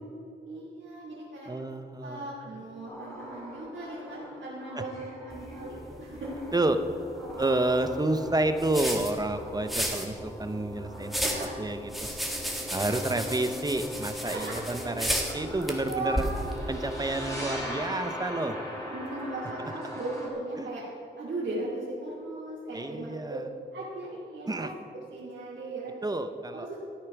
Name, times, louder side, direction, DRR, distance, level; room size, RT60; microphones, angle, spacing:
voice 1, 0.4-1.5 2.0-6.4 11.1-11.6 12.7-12.8 14.2-14.9 15.5-16.4 18.9-20.8 21.2-23.4 23.7-25.9 26.5-26.8, right 2 dB, 70° right, -8 dB, 2.4 m, -37 dB
voice 2, 1.5-2.3 6.5-6.8 7.4-11.2 11.6-12.1 12.7-16.2 16.7-18.6 20.6-20.7 22.7-23.4 24.5-24.7 26.0-26.7, right 2 dB, 20° right, 9 dB, 0.8 m, -29 dB
sound 1, 2.9-20.3, equal, 15° left, 3.1 m, -41 dB
sound 2, 5.3-17.5, equal, ahead, 1.7 m, -35 dB
13.0 x 8.7 x 6.0 m, 2.6 s
wide cardioid pair, 95°, 19 cm